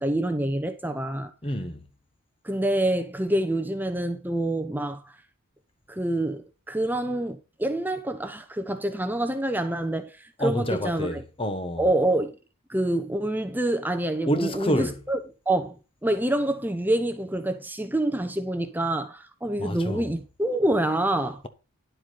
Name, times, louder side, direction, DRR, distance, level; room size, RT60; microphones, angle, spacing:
voice 1, 0.0-1.3 2.4-5.1 5.9-11.2 11.8-12.3 12.7-15.2 15.5-21.4, right 1 dB, 10° right, 0.8 m, -27 dB
voice 2, 1.4-1.9 10.4-11.9 14.2-15.0 19.6-20.1, equal, 25° left, 1.2 m, -28 dB
10.5 x 7.9 x 4.1 m
head